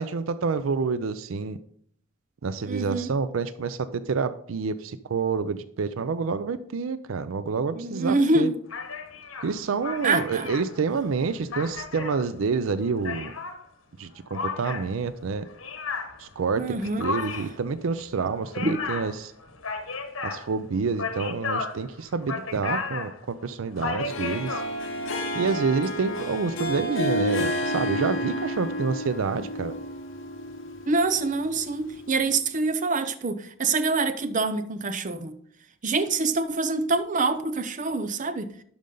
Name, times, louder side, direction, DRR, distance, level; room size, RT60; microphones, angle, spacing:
voice 1, 0.0-1.6 2.4-8.5 9.4-13.3 14.0-15.5 16.2-19.3 20.2-24.6 25.3-29.7, right 5 dB, 80° right, 0.5 m, -28 dB
voice 2, 2.6-3.1 7.7-8.6 10.0-10.5 16.6-17.1 18.6-18.7 30.9-35.4 35.8-38.5, right 3 dB, 40° right, 0.6 m, -25 dB
sound 1, 8.7-13.6 14.3-24.7, left 4 dB, 90° left, 1.2 m, -34 dB
Harp, 24.0-32.3, left 1 dB, 70° left, 1.2 m, -31 dB
12.0 x 5.2 x 3.8 m
head